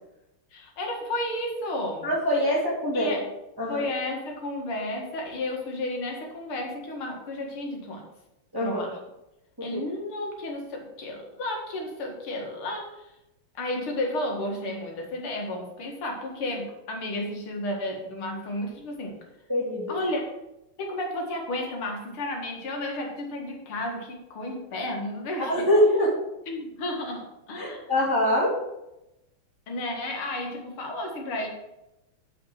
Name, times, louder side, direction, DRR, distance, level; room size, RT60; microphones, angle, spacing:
voice 1, 0.5-2.1 2.9-3.2 3.7-8.1 8.6-9.0 9.6-13.1 13.5-19.1 19.9-20.2 20.8-25.7 26.5-27.8 29.7-31.5, left 1 dB, 75° left, 1 dB, 2.8 m, -32 dB
voice 2, 2.0-3.2 3.6-3.8 8.5-8.9 9.6-9.8 19.5-20.0 25.4-26.2 27.6-28.5, equal, 10° right, -5 dB, 2.0 m, -24 dB
7.1 x 6.1 x 7.4 m, 0.90 s
omnidirectional pair, 2.4 m